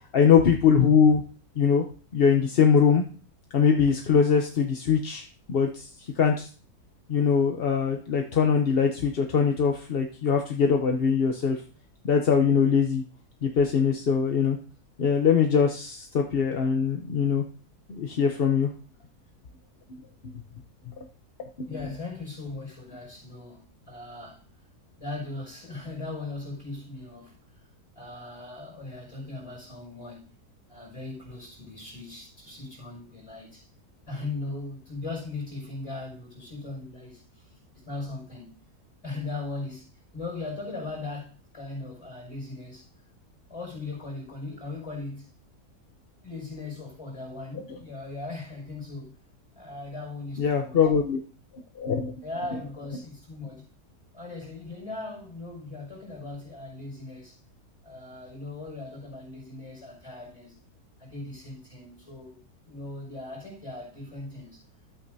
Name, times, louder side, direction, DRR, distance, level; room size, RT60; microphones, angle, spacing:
voice 1, 0.1-1.2 1.6-1.8 2.1-3.0 3.5-6.5 7.1-11.6 12.0-13.0 13.4-14.6 15.0-17.4 17.9-18.7 20.9-21.0 21.6-21.7 47.7-47.8 50.4-51.2 51.8-52.2, left 6 dB, 45° left, 0.8 m, -22 dB
voice 2, 21.7-24.4 25.0-27.7 27.9-30.3 30.7-33.7 34.1-38.6 39.0-39.9 40.1-42.9 43.5-45.3 46.2-49.2 49.5-50.8 52.2-53.6 54.1-57.4 57.8-60.6 61.0-64.6, left 2 dB, 20° left, 5.9 m, -39 dB
12.5 x 8.7 x 2.7 m
omnidirectional pair, 1.7 m